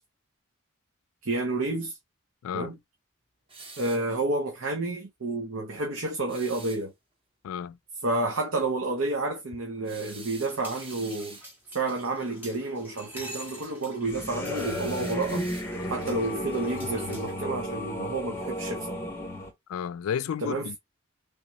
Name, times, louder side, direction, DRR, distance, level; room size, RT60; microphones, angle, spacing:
voice 1, 1.2-2.0 2.5-2.8 3.8-6.9 8.0-11.4 11.7-15.5 15.9-19.0 20.4-20.7, right 2 dB, 70° right, 0.8 m, -30 dB
voice 2, 2.4-2.7 7.4-7.8 19.7-20.8, left 8 dB, 75° left, 0.3 m, -32 dB
sound 1, 3.5-4.1 6.3-6.8 9.8-11.5 14.5-16.0, right 3 dB, 25° right, 0.8 m, -46 dB
sound 2, 10.4-17.5, equal, 10° right, 1.3 m, -46 dB
sound 3, 14.0-19.5, equal, 10° left, 0.7 m, -33 dB
3.4 x 2.8 x 2.9 m
head